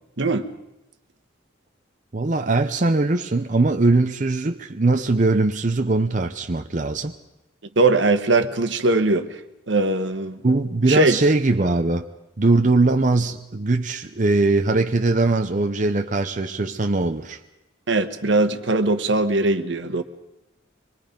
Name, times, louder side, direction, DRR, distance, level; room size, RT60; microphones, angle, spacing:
voice 1, 2.1-7.1 10.4-12.1 12.4-17.4, right 2 dB, 40° right, 0.7 m, -21 dB
voice 2, 7.8-9.3 9.7-10.4 10.9-11.2 17.9-20.0, right 2 dB, 75° right, 1.2 m, -20 dB
25.0 x 22.0 x 5.2 m
head